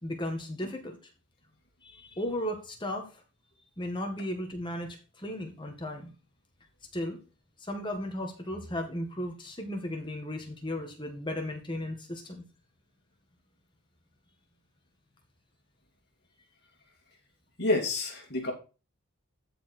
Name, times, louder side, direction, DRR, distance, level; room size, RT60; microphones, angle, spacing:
voice 1, 0.0-1.0 1.8-3.2 3.8-6.1 6.9-7.2 7.6-12.4, left 1 dB, 20° left, 3 dB, 1.9 m, -35 dB
voice 2, 17.6-18.5, left 2 dB, 50° left, 1 dB, 2.9 m, -28 dB
13.0 x 5.0 x 4.4 m, 0.32 s
head